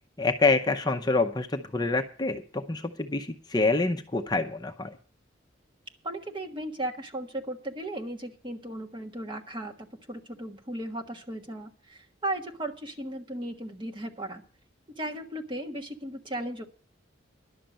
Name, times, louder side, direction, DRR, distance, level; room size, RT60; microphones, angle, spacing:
voice 1, 0.2-5.0, left 3 dB, 20° left, 5 dB, 0.7 m, -26 dB
voice 2, 6.0-14.4 15.0-16.6, right 1 dB, 25° right, 2 dB, 1.4 m, -36 dB
11.5 x 6.7 x 8.9 m, 0.41 s
head